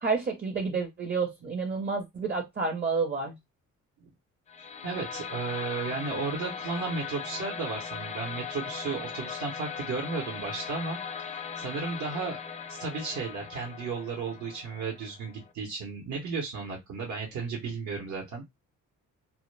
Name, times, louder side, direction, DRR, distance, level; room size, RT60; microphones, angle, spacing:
voice 1, 0.0-3.4, right 4 dB, 35° right, 0.6 m, -29 dB
sound 1, 4.5-15.5, left 7 dB, 25° left, 0.4 m, -39 dB
voice 2, 4.6-12.4 12.7-18.4, right 4 dB, 70° right, 0.8 m, -34 dB
2.1 x 2.0 x 3.1 m
cardioid pair, 90°, 30 cm